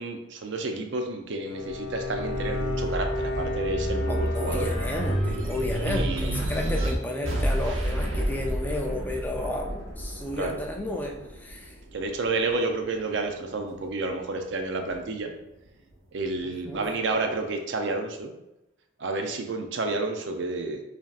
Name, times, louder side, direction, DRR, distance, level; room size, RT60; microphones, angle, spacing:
voice 1, 0.0-4.7 5.9-6.4 10.4-10.6 11.9-15.3 16.1-18.3 19.0-20.8, right 3 dB, 60° right, 4 dB, 0.5 m, -30 dB
Bowed string instrument, 1.4-5.8, left 2 dB, 85° left, 0.7 m, -33 dB
sound 1, 1.7-12.5 13.0-14.1, equal, 75° right, 1.0 m, -30 dB
voice 2, 4.1-11.8 16.4-16.8, left 1 dB, 10° left, 1 dB, 0.4 m, -32 dB
sound 2, 6.7-6.9 7.3-7.7 8.1-8.4 8.9-9.2 9.6-10.6 11.2-11.4 11.7-12.2 12.8-13.0 13.6-13.9, equal, 20° right, 1.5 m, -49 dB
5.0 x 2.8 x 2.4 m, 0.89 s
head